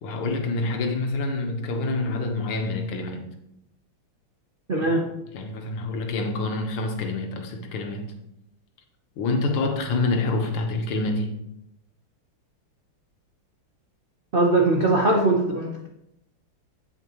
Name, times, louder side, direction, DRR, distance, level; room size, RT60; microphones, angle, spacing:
voice 1, 0.0-3.3 4.8-5.0 5.3-8.1 9.2-11.4, left 2 dB, 80° left, 1.9 m, -27 dB
voice 2, 4.7-5.0 14.3-15.9, right 2 dB, 90° right, 0.4 m, -21 dB
8.3 x 7.8 x 3.0 m
omnidirectional pair, 2.4 m